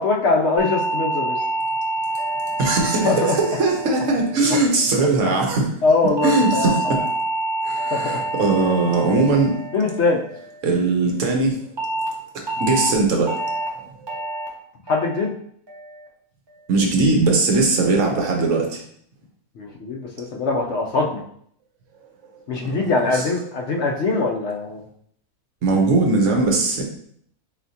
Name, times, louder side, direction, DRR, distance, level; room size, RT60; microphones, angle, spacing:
voice 1, 0.0-1.4 3.0-3.4 5.8-7.0 7.9-8.2 9.7-10.2 14.9-15.3 19.6-21.2 22.5-24.8, left 3 dB, 60° left, 0 dB, 0.7 m, -22 dB
sound 1, 0.6-5.0 6.2-10.6 11.8-12.1 12.5-12.9 13.3-13.7 14.1-14.5 14.9-15.3 15.7-16.1, right 2 dB, 25° right, 0.6 m, -27 dB
voice 2, 2.6-5.7 6.2-7.0 7.6-9.5 10.6-11.6 12.6-13.4 14.0-14.1 16.7-18.8 22.7-22.8 23.1-23.2 25.6-26.8, right 3 dB, 60° right, 1 dB, 1.1 m, -20 dB
4.2 x 3.3 x 2.7 m, 0.64 s
omnidirectional pair, 1.6 m